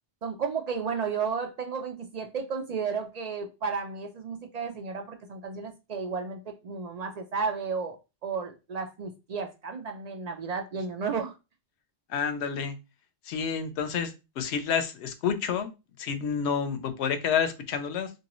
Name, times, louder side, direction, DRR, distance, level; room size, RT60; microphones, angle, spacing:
voice 1, 0.2-8.0 8.2-11.3, right 5 dB, 60° right, 6 dB, 0.4 m, -33 dB
voice 2, 12.1-12.8 13.2-18.1, left 7 dB, 75° left, 9 dB, 0.9 m, -29 dB
2.8 x 2.6 x 2.9 m, 0.27 s
omnidirectional pair, 1.1 m